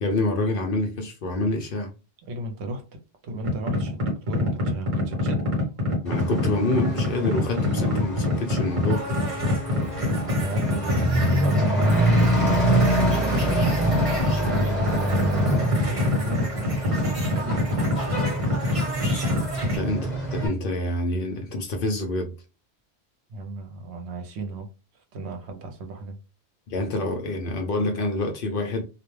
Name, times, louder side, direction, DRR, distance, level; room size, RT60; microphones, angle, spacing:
voice 1, 0.0-1.9 6.0-9.0 19.7-22.3 26.7-28.8, left 2 dB, 60° left, 0.6 m, -27 dB
voice 2, 2.3-4.0 4.3-5.4 9.4-9.6 9.9-13.9 14.8-16.9 17.3-17.7 23.3-24.7 25.1-26.2, right 2 dB, 70° right, 0.9 m, -35 dB
sound 1, 3.4-19.8, left 1 dB, 30° right, 0.9 m, -26 dB
Truck / Accelerating revving vroom, 6.0-20.5, right 1 dB, ahead, 1.1 m, -26 dB
2.3 x 2.1 x 3.0 m
omnidirectional pair, 1.2 m